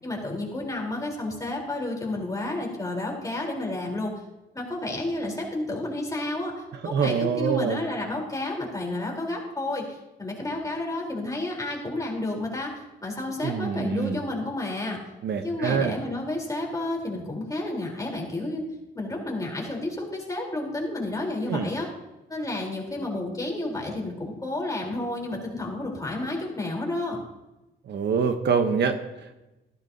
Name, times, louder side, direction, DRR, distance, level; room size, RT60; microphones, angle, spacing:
voice 1, 0.0-4.1 4.5-6.5 6.8-15.0 15.4-18.6 18.9-21.9 22.3-27.2, left 2 dB, 15° left, -1 dB, 3.8 m, -31 dB
voice 2, 6.8-7.8 13.4-14.2 15.2-15.9 21.5-21.7 27.8-29.3, right 6 dB, 60° right, 7 dB, 1.0 m, -25 dB
14.5 x 11.5 x 2.8 m, 1.0 s
cardioid pair, 90°, 20 cm